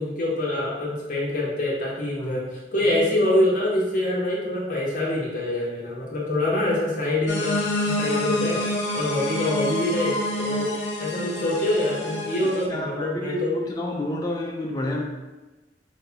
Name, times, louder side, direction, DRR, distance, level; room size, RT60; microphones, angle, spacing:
voice 1, 0.0-7.6 7.8-8.6 8.9-10.7 11.0-13.6, left 1 dB, 50° left, -4 dB, 1.1 m, -25 dB
sound 1, 7.3-12.7, left 1 dB, 80° left, 0.9 m, -28 dB
voice 2, 12.7-15.0, left 1 dB, 20° left, -1 dB, 0.4 m, -29 dB
6.2 x 2.3 x 2.8 m, 1.1 s
head